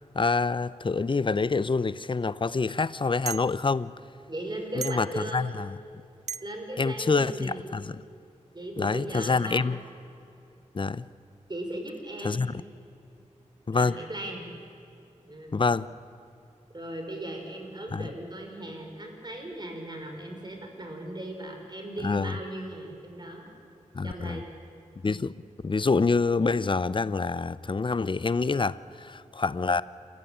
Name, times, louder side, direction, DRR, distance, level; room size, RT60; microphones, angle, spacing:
voice 1, 0.1-3.9 4.7-5.7 6.8-8.0 8.8-9.8 10.7-11.1 12.2-12.6 13.7-14.0 15.5-15.9 17.9-18.0 22.0-22.4 23.9-24.4 25.0-25.3 25.6-29.8, left 4 dB, 40° left, 0.6 m, -26 dB
sound 1, 2.0-2.1 3.3-3.5 4.8-5.1 6.3-6.5, right 7 dB, 60° right, 0.4 m, -35 dB
voice 2, 4.3-5.4 6.4-7.7 8.5-9.7 11.5-12.4 13.7-14.5 15.3-15.6 16.7-23.5 24.0-24.4, right 1 dB, 35° right, 5.2 m, -37 dB
28.0 x 15.0 x 8.7 m
wide cardioid pair, 60°, 13 cm